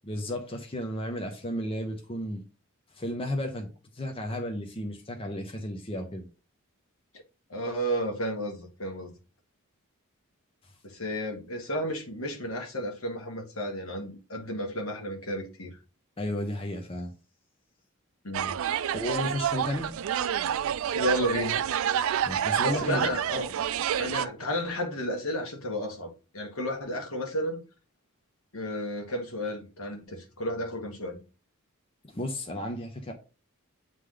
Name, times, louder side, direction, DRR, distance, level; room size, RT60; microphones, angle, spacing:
voice 1, 0.0-2.4 2.9-6.3 16.2-17.1 18.9-19.9 22.2-23.1 32.0-33.1, left 1 dB, 25° left, 0.7 m, -33 dB
voice 2, 7.5-9.2 10.8-15.8 18.2-18.5 20.9-21.6 22.6-23.5 24.0-27.6 28.5-31.2, equal, 70° left, 1.5 m, -32 dB
sound 1, 18.3-24.2, right 9 dB, 65° right, 0.3 m, -28 dB
8.2 x 3.3 x 3.8 m
head